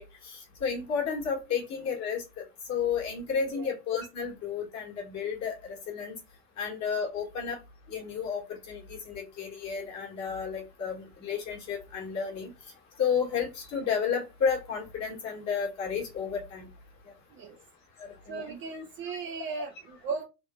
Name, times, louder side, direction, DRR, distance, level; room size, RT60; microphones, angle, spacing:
voice 1, 0.0-6.1 6.6-7.6 7.9-12.5 13.0-16.7 18.0-18.6, left 6 dB, 35° left, -1 dB, 1.7 m, -32 dB
voice 2, 18.3-20.2, right 4 dB, 25° right, 3 dB, 0.5 m, -36 dB
3.7 x 2.8 x 2.3 m, 0.26 s
hypercardioid pair, 105°, 47 cm